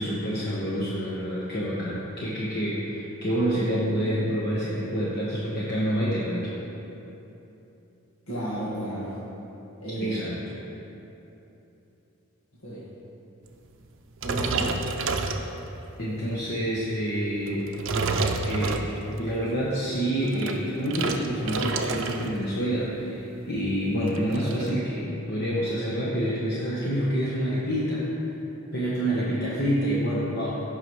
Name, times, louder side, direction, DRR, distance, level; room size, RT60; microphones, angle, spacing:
voice 1, 0.0-6.5 10.0-10.3 16.0-17.7 18.4-28.1 28.7-30.6, equal, 50° left, -7 dB, 1.1 m, -27 dB
voice 2, 8.3-9.2 9.8-10.2 12.6-12.9 14.2-14.8, right 1 dB, 80° left, -10 dB, 1.7 m, -32 dB
sound 1, 14.2-15.9 16.4-16.7 17.5-19.3 20.1-22.4 22.6-22.9 23.3-23.4 23.6-24.7, right 3 dB, 60° right, 0.6 m, -29 dB
15.5 x 5.8 x 3.2 m, 3.0 s
head